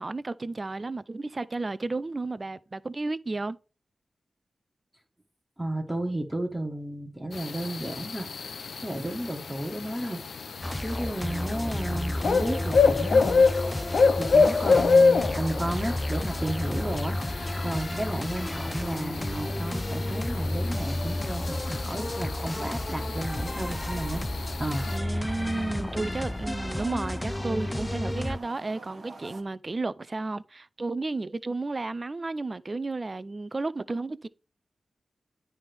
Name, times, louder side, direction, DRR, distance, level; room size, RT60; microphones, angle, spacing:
voice 1, 0.0-3.6 24.9-34.3, right 3 dB, 45° right, 0.4 m, -32 dB
voice 2, 5.6-8.3 8.8-10.2 10.8-13.5 14.2-24.3 24.6-24.9, right 1 dB, 15° right, 1.4 m, -33 dB
sound 1, 7.3-25.0, left 4 dB, 75° left, 0.6 m, -27 dB
sound 2, 10.6-28.4, left 1 dB, 20° left, 0.6 m, -32 dB
sound 3, 12.3-29.4, right 3 dB, 60° right, 1.1 m, -47 dB
9.6 x 3.4 x 6.0 m
cardioid pair, 40°, 0 cm